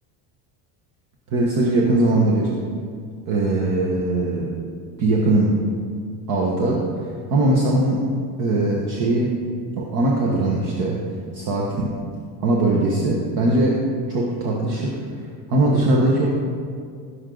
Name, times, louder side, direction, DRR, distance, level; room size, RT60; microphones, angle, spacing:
voice 1, 1.3-2.5 3.3-4.5 5.0-5.5 6.3-6.9 7.3-8.0 8.4-9.4 9.8-11.0 11.3-11.9 12.4-15.0 15.5-16.3, right 2 dB, 50° right, -3 dB, 1.3 m, -20 dB
16.5 x 6.5 x 3.9 m, 2.2 s
cardioid pair, 180°, 43 cm